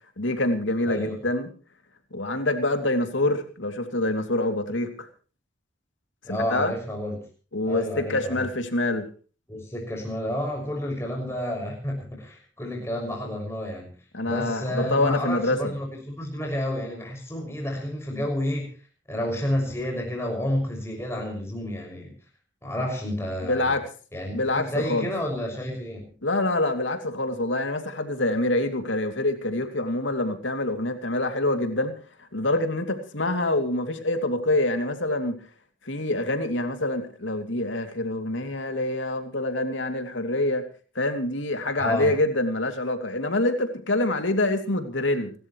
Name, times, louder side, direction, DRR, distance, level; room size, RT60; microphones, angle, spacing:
voice 1, 0.2-1.5 2.1-5.1 6.3-6.7 7.5-9.1 14.1-15.7 23.4-23.9 24.3-25.1 26.2-31.9 32.2-35.4 35.8-40.6 40.9-45.3, left 2 dB, 80° left, 7 dB, 2.7 m, -26 dB
voice 2, 0.9-1.2 6.2-7.2 7.7-8.5 9.5-13.9 14.2-18.7 19.1-22.1 22.6-23.7 24.1-26.0 41.8-42.1, left 1 dB, 15° left, 0 dB, 6.2 m, -30 dB
29.5 x 13.5 x 3.2 m, 0.38 s
head